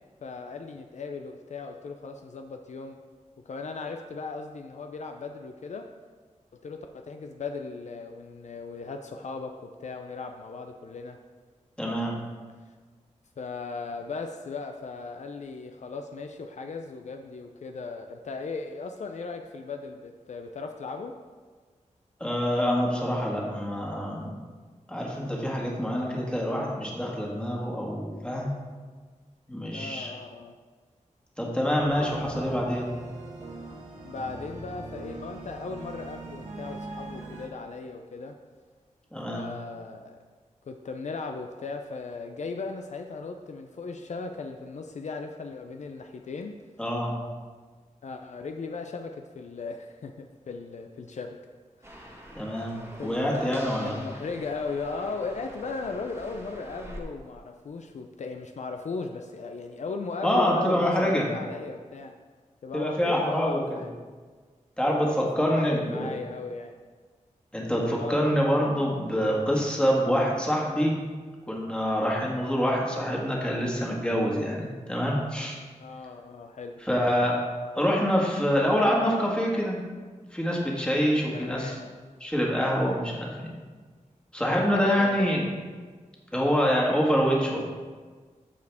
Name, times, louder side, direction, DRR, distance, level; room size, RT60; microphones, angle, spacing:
voice 1, 0.2-3.0 3.5-5.9 6.5-11.2 13.4-21.2 29.7-30.6 34.0-38.4 39.3-40.2 40.7-46.6 48.0-51.4 51.8-51.9 53.0-62.1 62.6-63.9 65.0-66.8 67.9-68.4 75.8-76.7 81.3-81.8 84.6-85.2, left 4 dB, 60° left, 5 dB, 0.5 m, -37 dB
voice 2, 11.8-12.2 22.2-24.4 24.9-28.5 29.5-30.1 31.4-32.9 39.1-39.5 46.8-47.2 52.4-53.9 60.2-61.3 62.7-63.8 64.8-66.1 67.5-71.0 71.5-75.6 76.8-77.4 77.7-79.8 80.3-81.8 82.2-83.5 84.3-85.4 86.3-87.6, equal, 10° left, -3 dB, 1.7 m, -26 dB
sound 1, 31.8-37.5, right 2 dB, 60° right, 1.8 m, -41 dB
sound 2, 51.8-57.0, right 1 dB, 20° right, 1.5 m, -45 dB
14.0 x 4.9 x 3.5 m, 1.5 s
wide cardioid pair, 130°, 13 cm